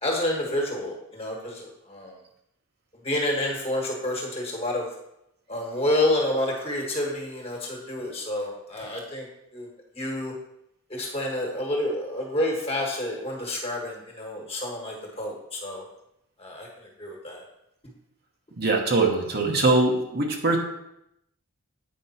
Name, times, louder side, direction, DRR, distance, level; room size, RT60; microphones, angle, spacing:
voice 1, 0.0-2.2 3.0-4.9 5.5-9.3 9.5-9.7 9.9-10.3 10.9-15.8 16.4-16.7 17.0-17.4, left 1 dB, 25° left, -1 dB, 1.6 m, -29 dB
voice 2, 18.6-20.6, right 2 dB, 45° right, 0 dB, 1.1 m, -22 dB
8.6 x 5.2 x 4.3 m, 0.82 s
head